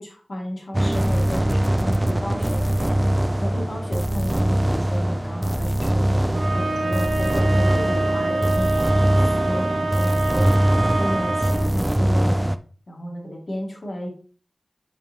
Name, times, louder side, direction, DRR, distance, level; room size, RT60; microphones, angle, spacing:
voice 1, 0.0-2.9 3.4-9.2 9.4-10.6 11.0-12.4 12.9-14.1, equal, 60° left, -1 dB, 2.4 m, -32 dB
sound 1, 0.7-12.6, right 1 dB, 20° right, 0.4 m, -22 dB
sound 2, 6.3-11.8, right 2 dB, 80° right, 1.0 m, -26 dB
7.4 x 4.7 x 2.9 m, 0.40 s
wide cardioid pair, 50°, 0 cm